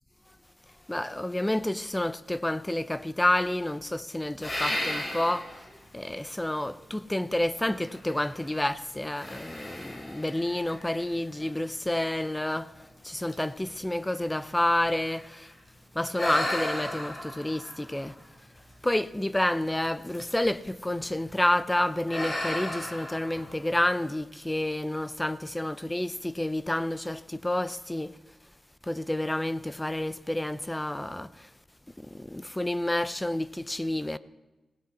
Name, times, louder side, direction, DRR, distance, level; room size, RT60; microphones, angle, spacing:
voice 1, 0.9-5.7 5.9-15.5 15.9-18.2 18.8-28.2 28.8-31.5 32.0-34.2, left 1 dB, 10° left, 0.7 m, -29 dB
sound 1, 4.4-5.7 6.3-6.4 7.8-8.6 9.2-11.5 12.2-12.3 12.8-12.9 13.2-15.5 16.1-18.9 20.0-20.6 20.9-21.2 22.1-24.0, left 1 dB, 25° left, 3.6 m, -35 dB
20.0 x 17.0 x 4.2 m
cardioid pair, 80°, 0 cm